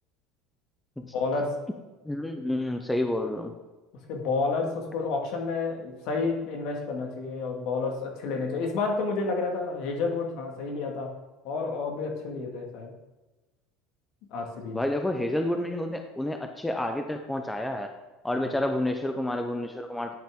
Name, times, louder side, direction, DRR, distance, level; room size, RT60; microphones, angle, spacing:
voice 1, 1.0-1.5 4.1-11.1 11.4-12.9 14.3-14.8 18.3-18.6, left 4 dB, 65° left, 2 dB, 1.8 m, -30 dB
voice 2, 2.0-3.5 14.7-17.9 18.2-20.2, left 1 dB, 5° left, 5 dB, 0.6 m, -29 dB
10.5 x 5.7 x 3.6 m, 1.1 s
supercardioid pair, 125°, 0 cm